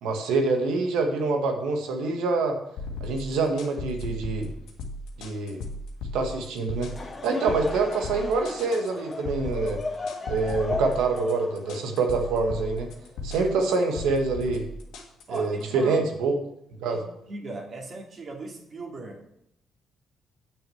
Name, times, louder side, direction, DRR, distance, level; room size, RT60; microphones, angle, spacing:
voice 1, 0.0-2.6 3.0-4.5 5.2-5.6 6.1-6.9 7.2-9.8 10.3-12.9 13.2-14.7 15.3-16.4 16.8-17.0, right 3 dB, 80° right, 4 dB, 1.8 m, -26 dB
sound 1, 2.8-15.6, left 2 dB, 80° left, 1.7 m, -36 dB
Laughter / Crowd, 6.7-13.2, left 3 dB, 35° left, 2.2 m, -36 dB
voice 2, 15.3-16.0 16.8-19.3, right 2 dB, 50° right, 0 dB, 2.5 m, -38 dB
8.8 x 6.3 x 7.3 m, 0.77 s
supercardioid pair, 65°, 0 cm